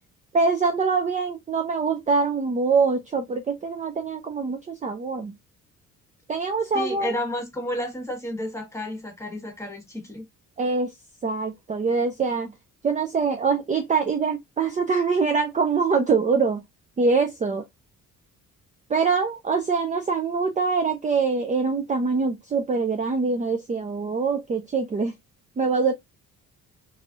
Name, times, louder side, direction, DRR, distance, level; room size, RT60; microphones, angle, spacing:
voice 1, 0.3-5.3 6.3-7.2 10.6-10.9 11.2-12.5 12.8-16.6 17.0-17.6 18.9-25.1 25.6-25.9, right 4 dB, 25° right, 0.5 m, -24 dB
voice 2, 6.7-10.2, left 1 dB, 10° left, 1.3 m, -31 dB
3.1 x 2.7 x 2.4 m
cardioid pair, 105°, 31 cm